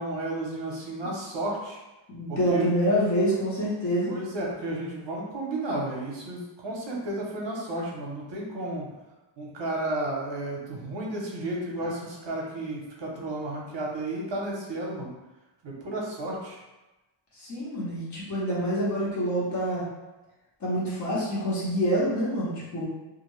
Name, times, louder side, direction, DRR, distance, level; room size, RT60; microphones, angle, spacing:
voice 1, 0.0-1.8 2.3-2.7 4.1-8.9 9.4-15.1 15.6-16.6, right 1 dB, 60° right, -3 dB, 0.7 m, -32 dB
voice 2, 2.1-4.1 17.4-19.8 20.6-22.9, equal, 35° left, -7 dB, 0.9 m, -26 dB
2.4 x 2.1 x 3.0 m, 1.1 s
wide cardioid pair, 155°, 49 cm